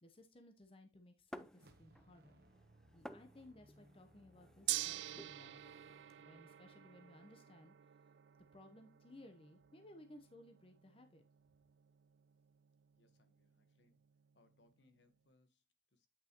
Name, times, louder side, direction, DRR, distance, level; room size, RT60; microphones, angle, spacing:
voice 1, 0.0-2.4 2.9-5.6 6.2-7.7 8.5-11.2, left 1 dB, 30° left, 0.8 m, -60 dB
sound 1, 1.3-2.2 2.4-6.1, equal, 5° left, 0.4 m, -56 dB
sound 2, 1.5-6.9, right 1 dB, 55° right, 0.9 m, -67 dB
Gong, 4.7-14.9, right 15 dB, 80° right, 0.4 m, -48 dB
voice 2, 12.9-14.0 14.3-16.1, left 2 dB, 75° left, 1.2 m, -74 dB
8.6 x 5.5 x 2.9 m
head